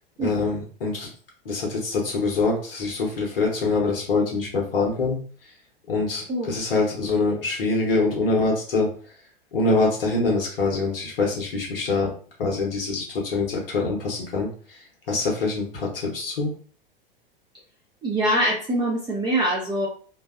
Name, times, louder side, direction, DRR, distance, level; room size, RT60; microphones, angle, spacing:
voice 1, 0.2-1.1 1.4-5.5 5.9-8.9 9.5-12.1 12.4-16.5, left 3 dB, 70° left, -1 dB, 0.9 m, -24 dB
voice 2, 18.0-19.9, right 1 dB, 15° right, -4 dB, 0.6 m, -23 dB
2.6 x 2.2 x 2.3 m, 0.42 s
figure-of-eight pair, 95°, 29 cm